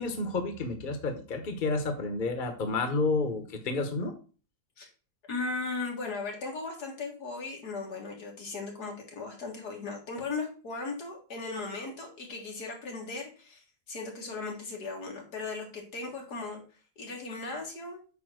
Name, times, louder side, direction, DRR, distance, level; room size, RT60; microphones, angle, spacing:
voice 1, 0.0-4.1, left 3 dB, 35° left, 6 dB, 1.2 m, -30 dB
voice 2, 5.3-16.6 17.0-18.0, left 3 dB, 90° left, 1 dB, 2.4 m, -37 dB
8.5 x 3.0 x 6.3 m, 0.37 s
omnidirectional pair, 1.6 m